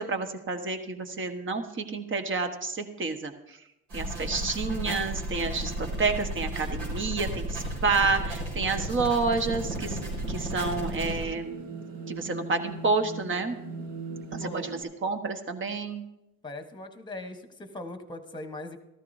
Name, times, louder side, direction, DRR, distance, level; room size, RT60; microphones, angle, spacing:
voice 1, 0.0-3.6 3.9-10.0 10.3-11.5 12.1-13.6 14.3-16.0, right 4 dB, 35° right, 7 dB, 1.4 m, -29 dB
sound 1, 3.9-11.3, right 1 dB, 80° right, 4.7 m, -33 dB
sound 2, 9.5-14.8, right 4 dB, 60° right, 1.5 m, -40 dB
voice 2, 14.4-14.7 16.4-18.8, left 2 dB, 10° left, 8 dB, 1.3 m, -40 dB
14.0 x 13.0 x 2.7 m, 0.89 s
supercardioid pair, 90°, 37 cm